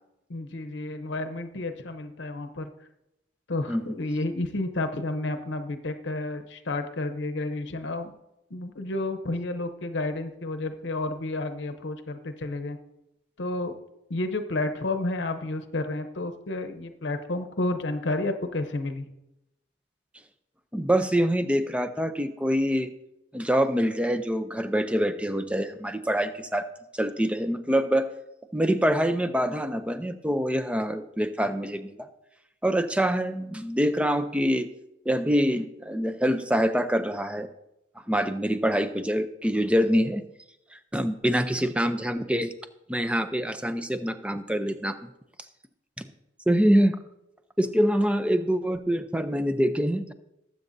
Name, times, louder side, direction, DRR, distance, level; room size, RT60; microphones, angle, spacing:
voice 1, 0.3-2.7 3.5-8.1 8.5-12.8 13.4-13.8 14.1-19.1, left 2 dB, 70° left, 7 dB, 0.8 m, -31 dB
voice 2, 20.7-22.9 23.3-26.7 26.9-28.1 28.5-32.1 32.6-34.7 35.1-37.5 38.1-40.2 40.7-42.5 42.9-45.0 46.0-46.1 46.5-47.0 47.6-50.1, equal, 5° right, 9 dB, 0.5 m, -25 dB
20.0 x 7.7 x 2.7 m, 0.86 s
head